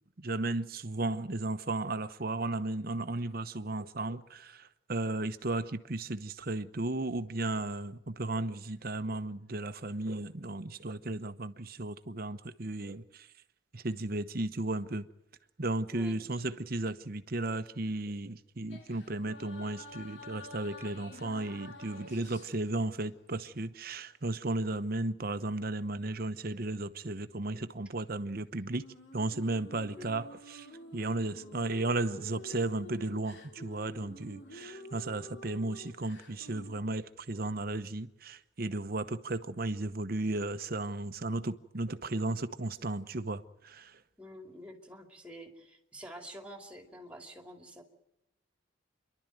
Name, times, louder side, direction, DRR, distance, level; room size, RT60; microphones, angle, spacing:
voice 1, 0.2-4.6 4.9-13.0 13.7-15.0 15.6-28.8 29.1-30.7 30.9-43.9, right 2 dB, 45° right, 0.9 m, -34 dB
voice 2, 15.9-16.4 30.0-30.1 44.2-47.8, equal, 5° right, 2.5 m, -48 dB
sound 1, 18.7-23.3 28.8-36.8, left 1 dB, 60° left, 2.7 m, -49 dB
28.5 x 12.0 x 9.1 m
head